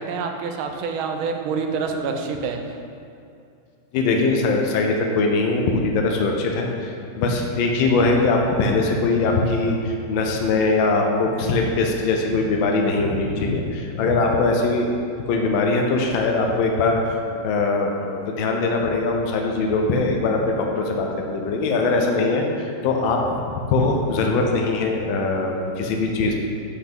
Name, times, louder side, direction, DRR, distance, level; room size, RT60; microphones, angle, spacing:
voice 1, 0.0-2.6, right 5 dB, 90° right, 4 dB, 1.5 m, -27 dB
voice 2, 3.9-17.0 17.4-23.4 23.7-26.3, left 3 dB, 75° left, 1 dB, 1.4 m, -21 dB
7.7 x 5.8 x 3.5 m, 2.5 s
omnidirectional pair, 2.2 m